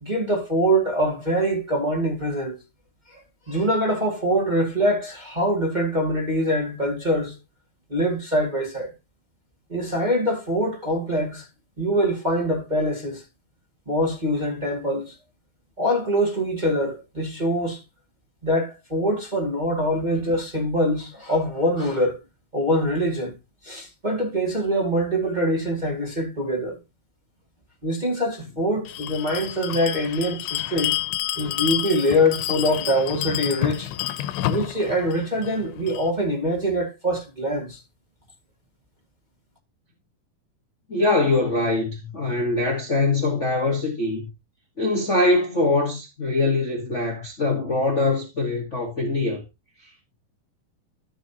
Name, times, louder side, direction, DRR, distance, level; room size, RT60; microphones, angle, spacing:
voice 1, 0.0-2.6 3.1-3.2 3.5-7.3 7.9-8.9 9.7-11.5 11.8-13.2 13.8-15.1 15.8-17.8 18.4-22.2 22.5-23.3 23.6-26.8 27.8-30.9 31.4-33.9 34.5-37.8, equal, 20° right, 1.4 m, -24 dB
Bell, 28.8-36.1, left 14 dB, 85° left, 2.7 m, -29 dB
voice 2, 40.9-44.3 44.8-49.4, left 2 dB, 65° left, 0.7 m, -23 dB
14.0 x 6.3 x 2.9 m
omnidirectional pair, 4.5 m